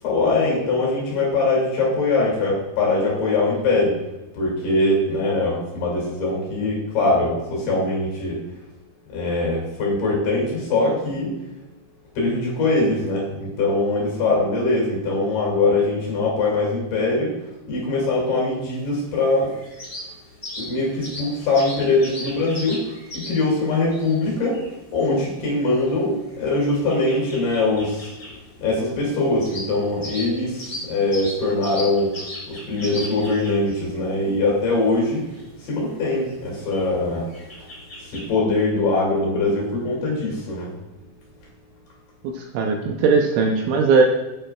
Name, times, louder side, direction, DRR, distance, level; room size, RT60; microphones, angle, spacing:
voice 1, 0.0-4.0 4.3-8.4 9.1-11.3 12.2-19.6 20.6-24.7 24.9-28.1 28.6-35.3 35.6-37.3 38.0-40.8, left 2 dB, 60° left, -3 dB, 3.8 m, -22 dB
sound 1, 18.7-38.3, left 1 dB, 20° left, 1.3 m, -39 dB
voice 2, 42.2-44.0, right 4 dB, 80° right, 1 dB, 2.8 m, -19 dB
9.2 x 8.9 x 2.3 m, 0.98 s
omnidirectional pair, 5.8 m